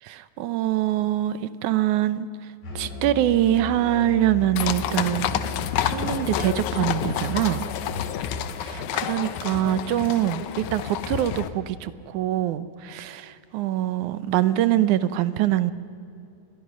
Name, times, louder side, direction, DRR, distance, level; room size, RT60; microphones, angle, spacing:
voice 1, 0.1-2.3 2.8-5.3 5.8-7.7 8.7-15.7, right 13 dB, 75° right, 14 dB, 2.2 m, -24 dB
Musical instrument, 2.6-8.2, left 4 dB, 60° left, 5.7 m, -34 dB
sound 1, 4.6-11.5, left 10 dB, 75° left, 2.2 m, -29 dB
27.5 x 21.5 x 6.3 m, 2.6 s
omnidirectional pair, 3.6 m